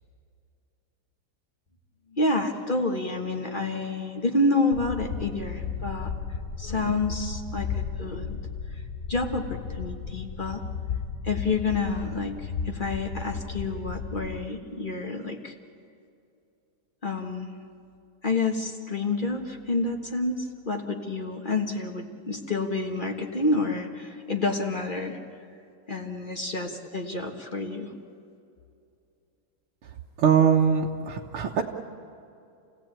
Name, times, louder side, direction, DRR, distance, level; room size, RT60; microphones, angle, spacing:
voice 1, 2.1-6.1 6.6-8.4 8.7-8.8 9.1-10.6 11.2-15.5 17.0-17.5 18.2-25.2 25.9-27.9, left 2 dB, 25° left, 3 dB, 1.3 m, -29 dB
sound 1, 4.7-14.5, left 6 dB, 50° left, 0.8 m, -34 dB
voice 2, 30.2-31.6, right 7 dB, 80° right, -1 dB, 2.0 m, -22 dB
28.5 x 17.0 x 8.9 m, 2.6 s
omnidirectional pair, 2.4 m